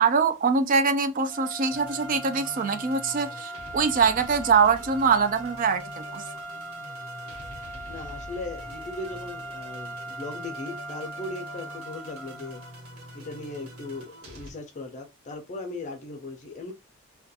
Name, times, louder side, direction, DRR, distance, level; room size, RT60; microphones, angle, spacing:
voice 1, 0.0-6.2, right 5 dB, 40° right, 0.4 m, -23 dB
sound 1, 1.2-12.8, right 1 dB, 15° right, 0.7 m, -40 dB
sound 2, 1.7-14.5, equal, 85° right, 1.0 m, -45 dB
voice 2, 7.9-12.6 13.1-16.7, left 2 dB, 35° left, 0.4 m, -38 dB
2.4 x 2.2 x 2.6 m
head